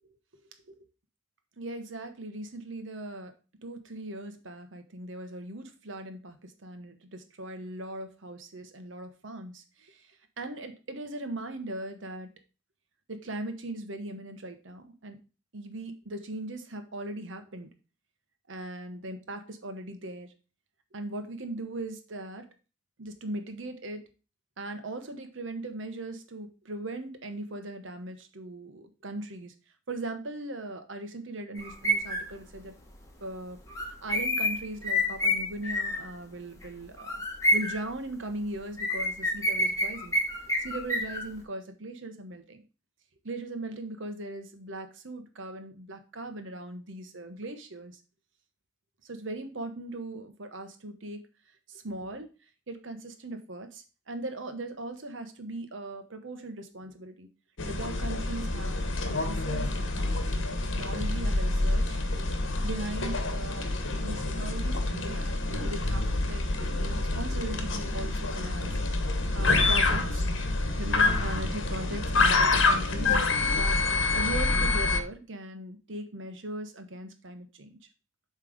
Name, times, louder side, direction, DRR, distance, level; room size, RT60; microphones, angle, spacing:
voice 1, 1.6-3.3 3.6-12.3 13.1-15.2 15.5-17.7 18.5-20.3 20.9-22.4 23.0-24.1 24.6-29.5 29.9-32.7 33.2-37.2 37.5-40.2 40.6-42.6 43.2-48.0 49.0-51.3 51.7-52.3 52.7-57.3 57.7-62.3 62.6-68.8 69.1-70.2 70.8-73.8 74.1-77.7, right 1 dB, 75° right, 7 dB, 1.1 m, -39 dB
sound 1, 31.5-32.3 33.7-36.1 36.6-36.7 37.0-37.8 38.8-41.3, left 1 dB, 15° left, 1.1 m, -28 dB
sound 2, 57.6-75.0, left 3 dB, 80° left, 1.1 m, -27 dB
7.6 x 3.3 x 5.0 m, 0.33 s
head